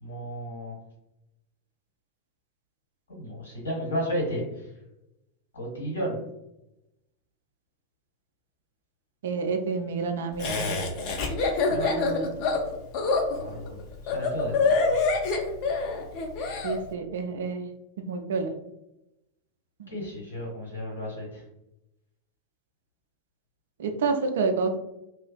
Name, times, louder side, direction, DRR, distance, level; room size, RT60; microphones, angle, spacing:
voice 1, 0.0-0.7 3.1-4.4 5.5-6.1 11.7-11.9 13.4-13.8 14.1-14.9 19.9-21.2, equal, 70° left, -4 dB, 1.3 m, -33 dB
voice 2, 9.2-10.8 11.7-12.3 16.6-17.6 18.1-18.5 19.8-19.9 23.8-24.8, right 4 dB, 60° right, 6 dB, 0.3 m, -28 dB
Laughter, 10.4-16.8, left 4 dB, 45° left, 0.4 m, -26 dB
2.4 x 2.3 x 2.2 m, 0.89 s
figure-of-eight pair, 90°, 0 cm